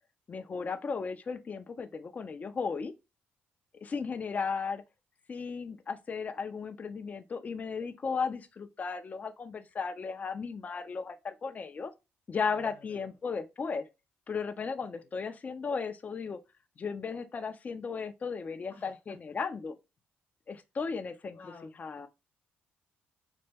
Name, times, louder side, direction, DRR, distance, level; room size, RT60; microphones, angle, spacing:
voice 1, 0.3-2.9 3.8-4.8 5.3-11.9 12.3-13.8 14.3-16.4 16.8-19.7 20.5-21.4 21.8-22.1, left 5 dB, 40° left, 0.6 m, -35 dB
voice 2, 12.5-13.1 18.7-19.2 20.5-20.6 21.3-21.7, left 4 dB, 55° left, 1.0 m, -53 dB
4.1 x 2.2 x 3.4 m
cardioid pair, 80°, 4 cm